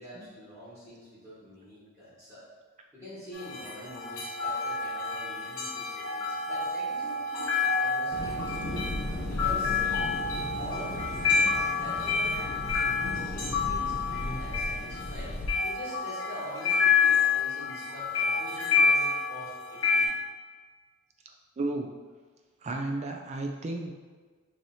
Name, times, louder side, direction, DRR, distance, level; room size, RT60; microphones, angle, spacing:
voice 1, 0.0-2.4 2.9-8.9 9.3-10.1 10.6-12.5 13.0-20.1, equal, 15° right, -11 dB, 1.3 m, -45 dB
sound 1, 3.3-20.1, left 5 dB, 70° left, 1.1 m, -28 dB
sound 2, 8.1-15.5, left 1 dB, 50° left, 0.5 m, -36 dB
voice 2, 21.6-21.9 22.6-23.9, right 2 dB, 30° right, 3 dB, 0.3 m, -33 dB
4.7 x 2.7 x 2.7 m, 1.4 s
head